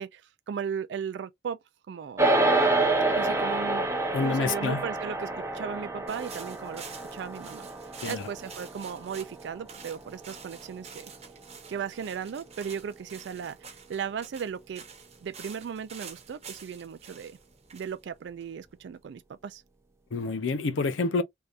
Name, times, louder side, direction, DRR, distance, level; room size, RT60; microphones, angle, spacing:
voice 1, 0.0-1.6 1.9-2.3 3.2-11.1 11.7-14.8 15.2-17.4 17.7-19.6, right 7 dB, 65° right, 0.3 m, -37 dB
sound 1, 2.2-11.7, right 2 dB, 15° right, 0.6 m, -29 dB
voice 2, 4.1-4.8 8.0-8.2 20.1-21.2, left 3 dB, 90° left, 0.5 m, -28 dB
sound 2, 6.1-18.9, right 6 dB, 35° right, 1.0 m, -48 dB
3.4 x 2.7 x 2.4 m
head